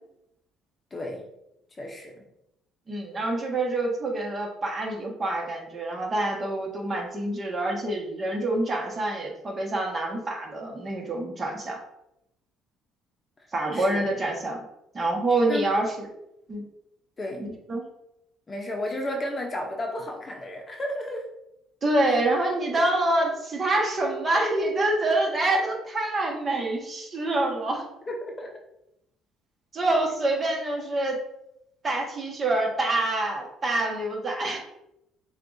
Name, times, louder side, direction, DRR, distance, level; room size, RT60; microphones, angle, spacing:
voice 1, 0.9-1.3 1.8-2.2 13.7-14.0 15.3-15.6 17.2-17.5 18.5-21.3 28.1-28.5, left 1 dB, 30° left, 1 dB, 0.9 m, -33 dB
voice 2, 2.9-11.8 13.5-14.6 14.9-16.1 16.5-16.6 17.4-17.8 21.8-27.9 29.7-31.2 31.8-34.6, right 2 dB, 35° right, -1 dB, 1.4 m, -26 dB
6.5 x 2.5 x 2.7 m, 0.83 s
supercardioid pair, 70°, 0 cm